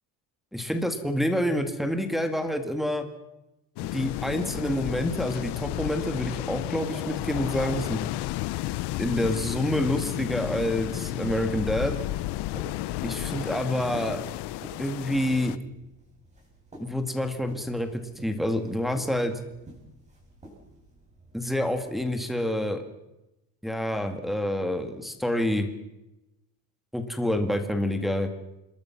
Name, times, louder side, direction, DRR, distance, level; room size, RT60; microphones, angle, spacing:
voice 1, 0.5-3.0 3.8-8.0 9.0-12.0 13.0-14.2 14.8-15.6 16.8-19.3 21.3-22.8 23.6-25.7 26.9-28.3, left 1 dB, ahead, 6 dB, 2.0 m, -27 dB
sound 1, 3.8-15.6, left 17 dB, 90° left, 0.8 m, -32 dB
sound 2, 4.7-21.7, right 1 dB, 15° right, 7.8 m, -50 dB
27.5 x 21.5 x 6.0 m, 0.92 s
cardioid pair, 175°, 39 cm